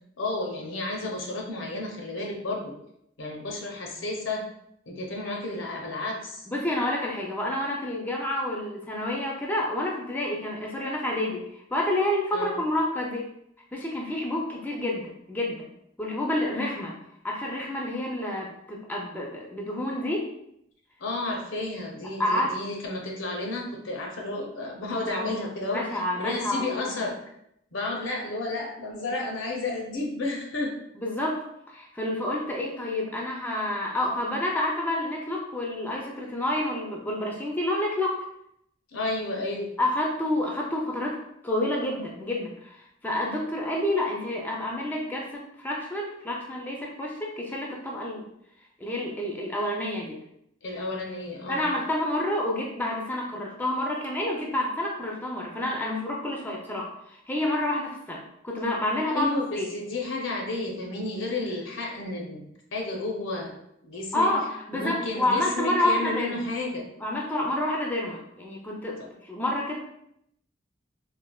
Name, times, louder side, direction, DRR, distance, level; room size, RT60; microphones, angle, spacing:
voice 1, 0.2-2.7 3.2-4.4 4.9-6.5 12.3-12.6 21.0-27.2 27.7-30.8 38.9-39.7 50.6-51.7 59.1-63.5 63.8-64.3 64.7-66.8 69.0-69.1, left 2 dB, 85° left, 0 dB, 0.6 m, -32 dB
voice 2, 6.5-13.3 13.7-15.7 16.0-16.9 17.2-20.3 22.2-22.5 25.0-25.3 25.7-26.9 31.0-38.2 39.8-41.2 41.4-48.2 48.8-50.2 51.5-59.7 64.1-66.4 67.0-69.8, left 1 dB, 10° left, -2 dB, 0.3 m, -29 dB
3.1 x 2.1 x 2.2 m, 0.75 s
head